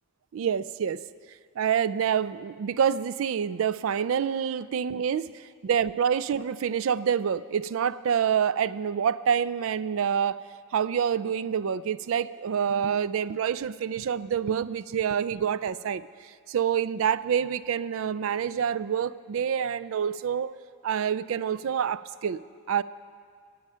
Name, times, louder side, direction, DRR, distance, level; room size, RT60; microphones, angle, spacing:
voice 1, 0.3-1.0 1.6-10.4 10.7-20.5 20.8-22.8, right 8 dB, 65° right, 17 dB, 0.3 m, -27 dB
16.5 x 8.8 x 5.6 m, 2.1 s
head